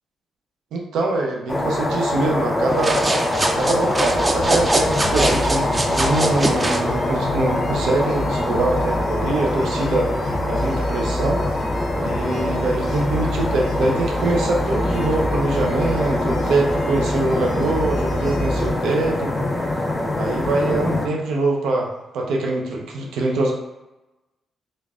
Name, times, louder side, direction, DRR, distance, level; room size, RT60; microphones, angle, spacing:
voice 1, 0.7-3.1 3.5-10.1 10.5-11.4 12.0-19.5 20.2-23.5, right 2 dB, 90° right, -1 dB, 0.7 m, -23 dB
sound 1, 1.5-21.1, left 1 dB, 20° left, 0.7 m, -24 dB
sound 2, 2.7-6.9, right 2 dB, 20° right, 0.5 m, -23 dB
sound 3, 4.0-18.7, left 1 dB, 60° left, 0.6 m, -29 dB
3.8 x 2.5 x 3.6 m, 1.0 s
cardioid pair, 110°, 0 cm